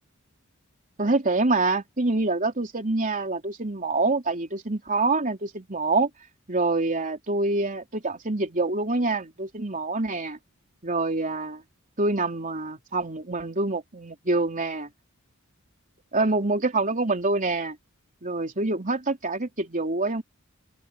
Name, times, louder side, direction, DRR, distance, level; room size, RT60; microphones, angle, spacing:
voice 1, 1.0-6.1 6.5-10.4 10.8-11.6 12.0-14.9 16.1-17.8 18.2-20.2, right 3 dB, 40° right, 3.6 m, -26 dB
open air
head